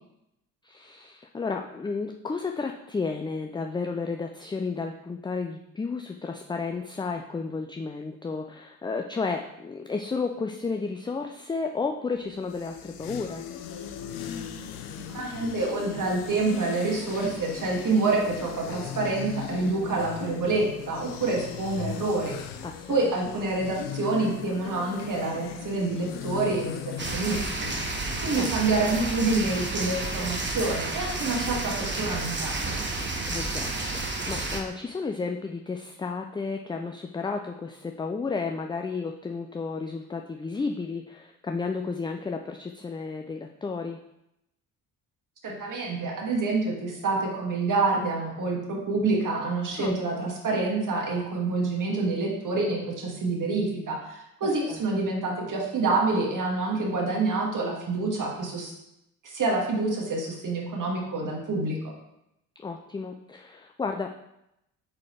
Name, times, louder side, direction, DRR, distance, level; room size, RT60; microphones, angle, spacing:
voice 1, 0.6-13.4 22.6-23.0 28.4-28.5 33.3-44.0 49.8-49.9 54.4-54.8 62.6-64.1, left 4 dB, 10° left, 4 dB, 0.4 m, -32 dB
sound 1, 12.3-28.2, left 8 dB, 80° left, 0.7 m, -38 dB
voice 2, 15.1-22.4 22.9-27.7 28.2-32.7 45.4-58.7 59.2-61.8, right 3 dB, 40° right, -2 dB, 2.2 m, -27 dB
sound 2, 27.0-34.6, right 2 dB, 25° right, 1.3 m, -31 dB
8.6 x 4.1 x 3.3 m, 0.84 s
hypercardioid pair, 50°, 46 cm